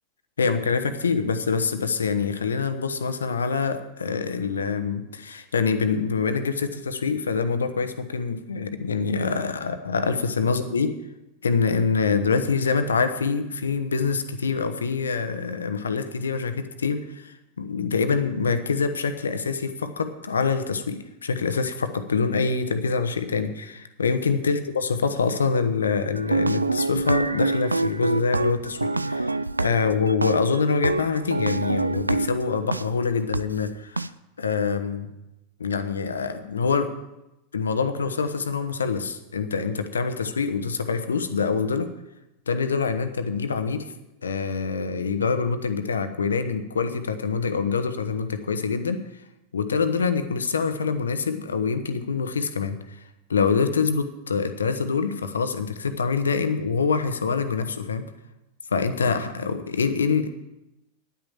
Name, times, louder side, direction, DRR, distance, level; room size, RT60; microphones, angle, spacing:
voice 1, 0.4-10.9 11.4-34.0 34.4-35.1 35.6-36.9 37.5-41.9 42.5-43.9 44.2-49.2 49.5-53.0 53.3-58.1 58.7-60.3, left 5 dB, 75° left, 9 dB, 1.0 m, -25 dB
sound 1, 26.1-32.8 33.3-33.4 34.0-34.1, right 3 dB, 90° right, 0.3 m, -26 dB
10.0 x 9.4 x 7.4 m, 0.95 s
figure-of-eight pair, 90°, 0 cm